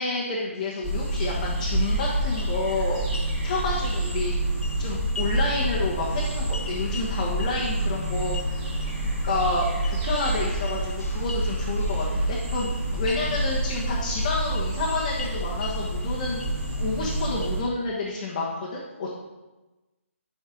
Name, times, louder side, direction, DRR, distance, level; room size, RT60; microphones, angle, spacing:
voice 1, 0.0-3.0 3.4-4.3 4.8-8.7 9.2-16.4 16.8-19.2, left 3 dB, 35° left, -4 dB, 1.4 m, -29 dB
sound 1, 0.6-17.5, left 4 dB, 80° left, 1.0 m, -44 dB
sound 2, 0.8-17.6, right 1 dB, 25° right, 2.6 m, -28 dB
10.5 x 5.3 x 3.9 m, 1.1 s
hypercardioid pair, 160°, 7 cm